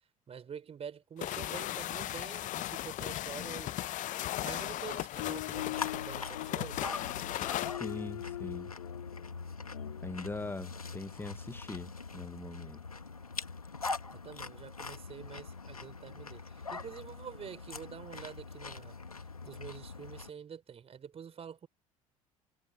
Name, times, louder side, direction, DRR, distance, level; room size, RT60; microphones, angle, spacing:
voice 1, 0.3-3.9 4.4-7.0 14.2-18.9 19.4-21.7, right 7 dB, 35° right, 5.0 m, -47 dB
sound 1, 1.2-7.8, left 14 dB, 45° left, 0.9 m, -37 dB
sound 2, 4.8-10.7 11.7-11.8, left 17 dB, 70° left, 3.1 m, -43 dB
sound 3, 5.6-20.3, left 4 dB, 85° left, 1.8 m, -43 dB
voice 2, 7.8-8.7 10.0-12.8, left 3 dB, 10° left, 1.2 m, -41 dB
figure-of-eight pair, 60°, 18 cm